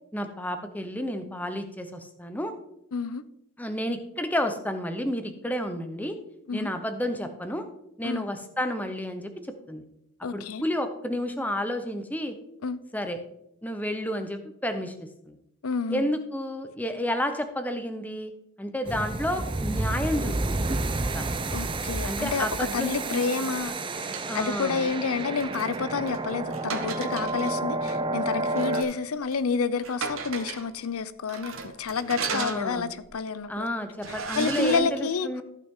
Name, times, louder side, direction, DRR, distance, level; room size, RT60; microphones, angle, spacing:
voice 1, 0.1-2.5 3.6-6.2 6.5-7.6 8.0-9.8 10.3-12.4 12.9-13.2 13.6-15.4 15.9-18.3 18.6-21.3 22.0-23.2 24.3-24.9 32.3-32.9 33.5-35.4, equal, 5° left, 7 dB, 0.8 m, -31 dB
voice 2, 2.9-3.2 6.5-6.7 8.0-8.3 10.2-10.6 12.6-12.8 15.6-16.1 21.5-22.5 22.7-33.7 34.3-35.3, left 5 dB, 85° left, 15 dB, 0.6 m, -29 dB
sound 1, 18.9-28.8, right 2 dB, 25° right, 0.5 m, -30 dB
sound 2, 23.6-24.3 25.2-27.5 27.9-28.0 28.6-29.0 29.3-29.4 29.8-30.7 31.3-33.1 33.5-33.6 34.0-34.8, right 5 dB, 70° right, 1.1 m, -36 dB
14.0 x 5.8 x 3.7 m, 0.80 s
head